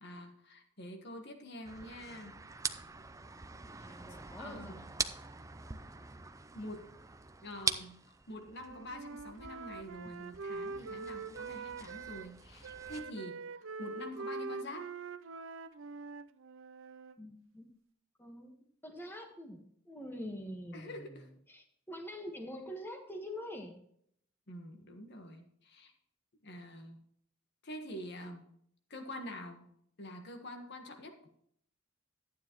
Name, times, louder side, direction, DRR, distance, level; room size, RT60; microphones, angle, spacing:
voice 1, 0.0-2.4 3.8-4.8 6.5-6.9 7.4-14.9 20.7-21.3 24.5-25.9 26.4-27.0 27.6-28.5 28.9-29.7 30.0-31.3, left 1 dB, 55° left, 4 dB, 1.5 m, -46 dB
sound 1, 1.6-13.0, right 5 dB, 15° right, 0.5 m, -43 dB
voice 2, 3.8-4.9 17.2-17.7 18.2-18.5 18.8-23.7, equal, 10° left, 2 dB, 1.5 m, -45 dB
Wind instrument woodwind instrument, 8.5-12.3 12.6-17.1, right 4 dB, 65° right, 0.5 m, -44 dB
11.5 x 9.5 x 3.1 m, 0.66 s
head